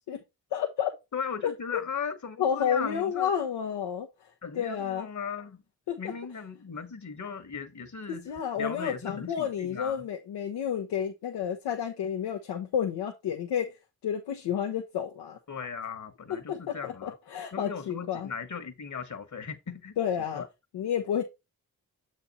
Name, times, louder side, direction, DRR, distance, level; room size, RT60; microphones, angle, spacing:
voice 1, 0.5-0.9 1.4-1.8 2.4-4.1 4.6-5.1 5.9-6.0 8.3-13.8 14.0-15.4 16.5-18.3 20.0-20.4 20.7-21.2, left 8 dB, 85° left, 0.8 m, -30 dB
voice 2, 1.1-3.3 4.4-5.6 6.0-10.0 15.5-17.1 17.5-20.0 20.3-20.5, left 6 dB, 45° left, 1.3 m, -37 dB
7.1 x 4.3 x 4.1 m
supercardioid pair, 40°, 39 cm